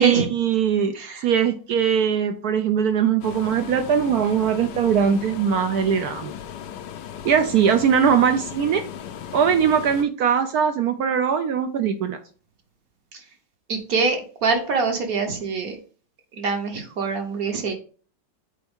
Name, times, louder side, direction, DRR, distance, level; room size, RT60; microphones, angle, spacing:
voice 1, 0.0-1.0 1.2-6.3 7.2-8.8 9.3-12.2, right 7 dB, 70° right, 8 dB, 0.9 m, -21 dB
voice 2, 0.9-1.3 13.1-13.2 13.7-15.8 16.4-17.7, right 4 dB, 55° right, 4 dB, 1.3 m, -24 dB
sound 1, 3.2-10.0, left 9 dB, 70° left, 1.2 m, -37 dB
7.0 x 4.3 x 3.6 m, 0.41 s
omnidirectional pair, 2.1 m